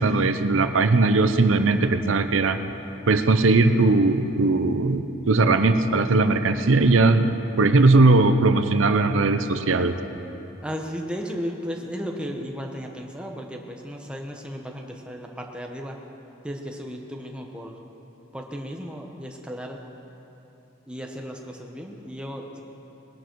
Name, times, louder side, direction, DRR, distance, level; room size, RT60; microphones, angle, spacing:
voice 1, 0.0-2.6 3.1-10.0, right 3 dB, 85° right, 9 dB, 0.7 m, -19 dB
voice 2, 10.6-16.0 16.4-17.8 18.3-19.8 20.9-22.6, equal, 5° right, 1 dB, 1.0 m, -35 dB
20.0 x 11.0 x 4.6 m, 3.0 s
head